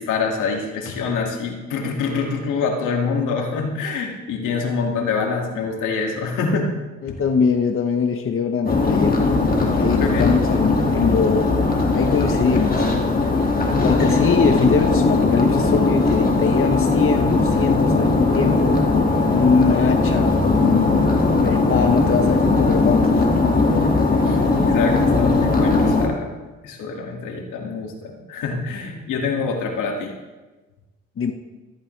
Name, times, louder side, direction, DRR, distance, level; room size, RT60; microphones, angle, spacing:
voice 1, 0.0-6.7 7.1-7.2 10.0-10.3 13.7-14.2 24.3-26.3 26.6-30.1, left 4 dB, 85° left, 1 dB, 2.2 m, -25 dB
voice 2, 7.0-9.3 9.8-11.6 11.9-13.2 13.8-18.9 19.2-21.1 21.4-23.3 31.2-31.3, left 5 dB, 45° left, 4 dB, 1.0 m, -22 dB
sound 1, 8.7-26.1, left 3 dB, 30° left, 2.1 m, -19 dB
14.5 x 13.0 x 3.3 m, 1.2 s
cardioid pair, 90°, 30 cm